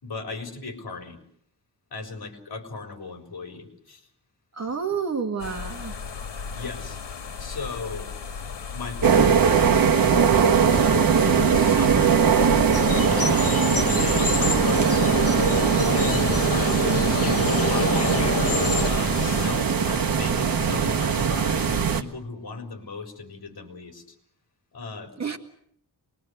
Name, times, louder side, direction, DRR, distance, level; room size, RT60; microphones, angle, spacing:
voice 1, 0.0-1.2 1.9-4.1 6.5-7.0 7.4-8.1 8.5-10.2 10.6-12.2 13.0-15.2 16.0-18.2 18.8-24.0 24.7-25.1, left 4 dB, 60° left, 4 dB, 4.4 m, -37 dB
voice 2, 4.5-5.9 25.2-25.4, right 6 dB, 40° right, 5 dB, 2.0 m, -29 dB
sound 1, 5.4-19.5, left 5 dB, 90° left, 2.2 m, -34 dB
sound 2, 9.0-22.0, right 6 dB, 55° right, 1.5 m, -21 dB
sound 3, 12.7-18.9, left 4 dB, 35° left, 1.6 m, -28 dB
25.0 x 21.5 x 8.1 m, 0.66 s
wide cardioid pair, 180°, 41 cm